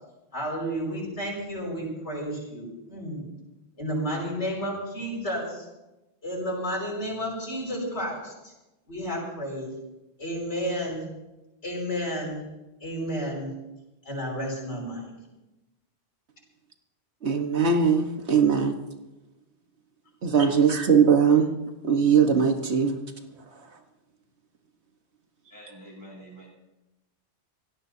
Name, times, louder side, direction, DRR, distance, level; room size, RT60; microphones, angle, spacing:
voice 1, 0.3-3.2 3.8-5.7 6.2-8.5 8.9-9.8 10.2-11.1 11.6-12.4 12.8-13.5 14.0-15.2 20.4-20.5, equal, 80° left, -2 dB, 6.0 m, -31 dB
voice 2, 17.2-18.8 20.2-21.5 21.8-23.0, right 6 dB, 75° right, 4 dB, 1.6 m, -20 dB
voice 3, 25.5-26.5, right 1 dB, 15° right, -3 dB, 7.8 m, -46 dB
26.0 x 17.5 x 2.8 m, 0.98 s
omnidirectional pair, 1.1 m